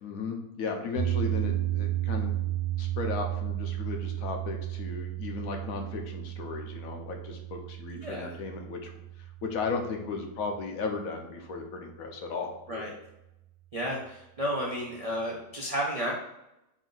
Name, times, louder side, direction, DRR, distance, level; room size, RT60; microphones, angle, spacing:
voice 1, 0.0-2.3 2.8-8.9 9.4-12.9, left 4 dB, 70° left, 3 dB, 1.0 m, -35 dB
sound 1, 0.9-11.2, right 14 dB, 90° right, 1.2 m, -33 dB
voice 2, 8.0-8.3 12.7-12.9 13.7-16.1, equal, 70° right, -3 dB, 0.3 m, -32 dB
4.3 x 2.5 x 3.8 m, 0.90 s
omnidirectional pair, 1.6 m